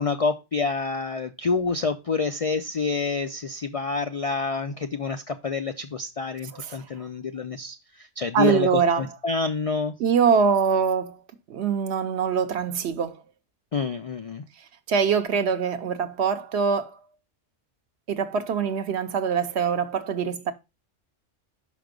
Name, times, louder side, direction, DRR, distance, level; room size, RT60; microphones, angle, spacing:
voice 1, 0.0-9.9 13.7-14.4, left 4 dB, 65° left, 0.3 m, -28 dB
voice 2, 8.3-9.1 10.0-11.2 11.5-13.2 14.9-16.9 18.1-20.5, right 6 dB, 65° right, 1.0 m, -23 dB
5.8 x 5.1 x 5.1 m
omnidirectional pair, 1.3 m